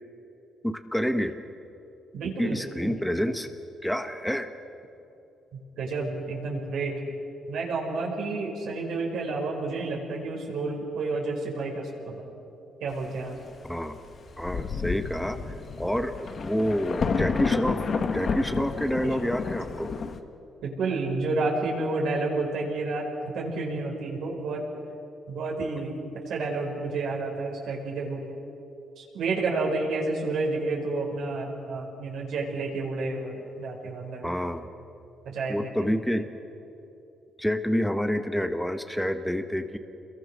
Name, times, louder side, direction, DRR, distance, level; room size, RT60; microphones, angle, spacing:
voice 1, 0.6-1.4 2.4-3.5 3.8-4.5 13.7-14.0 14.4-17.9 18.1-19.9 34.2-34.6 35.5-36.3 37.4-39.8, equal, 5° left, 8 dB, 1.2 m, -28 dB
voice 2, 2.1-2.9 5.5-7.0 7.5-12.3 12.8-13.4 19.0-19.3 20.6-24.7 25.3-28.2 29.0-34.4 35.3-35.7, right 3 dB, 75° right, -1 dB, 5.2 m, -30 dB
Thunder, 14.1-14.2 14.4-20.2, left 5 dB, 50° left, 1.5 m, -30 dB
27.0 x 22.0 x 6.4 m, 2.9 s
cardioid pair, 90°, 0 cm